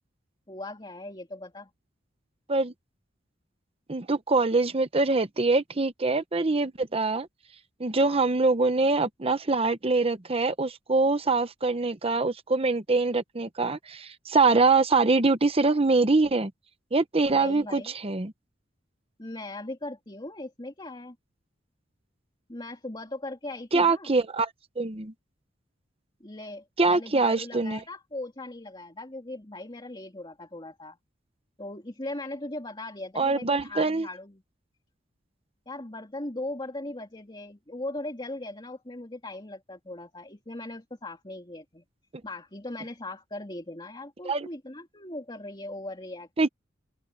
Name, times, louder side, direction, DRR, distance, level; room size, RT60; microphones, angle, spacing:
voice 1, 0.5-1.7 7.9-8.2 17.3-17.9 19.2-21.2 22.5-24.1 26.2-31.0 31.6-34.4 35.7-41.8 42.2-46.5, left 2 dB, 25° left, 2.8 m, -39 dB
voice 2, 3.9-7.3 7.8-16.5 16.9-18.3 23.7-24.5 24.8-25.1 26.8-27.8 33.2-34.1 44.2-44.5 46.4-46.5, right 3 dB, 30° right, 0.9 m, -24 dB
open air
head